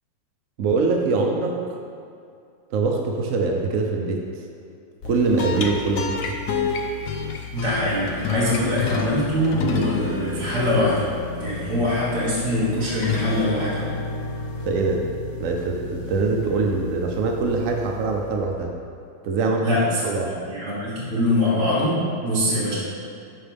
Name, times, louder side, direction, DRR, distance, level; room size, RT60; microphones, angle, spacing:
voice 1, 0.6-1.6 2.7-4.2 5.0-6.2 14.6-15.0 15.4-18.7 19.2-19.6 20.0-20.3, right 3 dB, 80° right, 1 dB, 0.7 m, -23 dB
sound 1, 5.0-18.6, left 5 dB, 70° left, 0.8 m, -30 dB
voice 2, 7.5-11.1 11.4-13.8 19.6-22.8, left 1 dB, 35° right, -10 dB, 2.5 m, -23 dB
12.0 x 4.9 x 3.4 m, 2.3 s
omnidirectional pair, 2.2 m